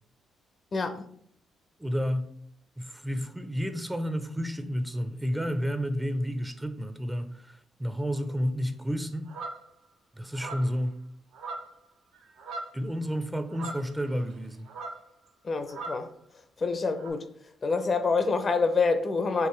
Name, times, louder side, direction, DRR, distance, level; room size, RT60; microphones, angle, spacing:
voice 1, 0.7-1.0 15.4-16.1 16.6-17.2 17.6-19.5, left 4 dB, 45° left, 0.5 m, -26 dB
voice 2, 1.8-2.3 2.8-9.3 10.2-11.0 12.7-14.7, equal, 10° right, 0.4 m, -31 dB
Clean Goose, 9.3-9.6 10.3-10.8 11.3-11.9 12.1-12.8 13.5-14.4 14.7-15.1 15.7-16.1 17.0-17.1, right 3 dB, 85° right, 0.7 m, -39 dB
4.6 x 2.8 x 3.1 m
cardioid pair, 70°, 0 cm